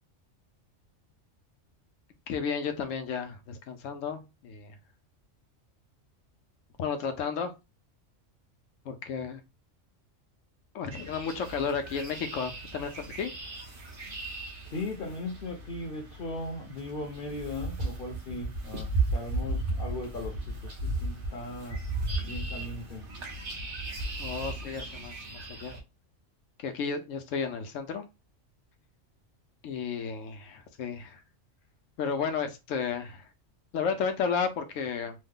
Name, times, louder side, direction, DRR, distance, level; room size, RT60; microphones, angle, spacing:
voice 1, 2.3-4.7 6.8-7.5 8.8-9.4 10.7-13.3 24.2-25.8 26.6-28.1 29.6-31.2 32.0-33.3 33.7-35.1, left 6 dB, 85° left, 1.0 m, -33 dB
sound 1, 10.9-25.8, right 2 dB, 50° right, 1.0 m, -35 dB
voice 2, 14.6-20.4 20.6-21.8 22.2-23.1, left 2 dB, 55° left, 0.7 m, -38 dB
3.1 x 2.1 x 3.5 m
omnidirectional pair, 1.3 m